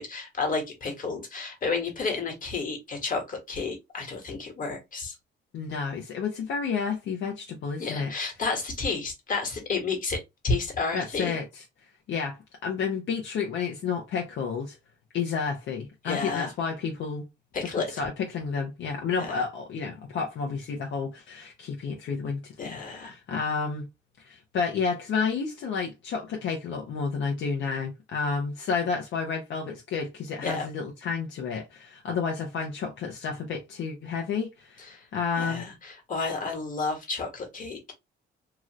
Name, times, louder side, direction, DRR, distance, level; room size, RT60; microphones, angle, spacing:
voice 1, 0.0-5.2 7.8-11.3 16.0-16.5 17.5-17.9 19.2-19.4 22.6-23.1 30.4-30.7 34.8-35.1 35.4-37.9, left 4 dB, 45° left, 1.5 m, -31 dB
voice 2, 5.5-8.1 10.9-11.5 12.1-14.8 15.1-17.3 17.9-23.8 24.2-35.6, left 5 dB, 70° left, 0.8 m, -31 dB
3.0 x 2.5 x 3.0 m
cardioid pair, 90°, 20 cm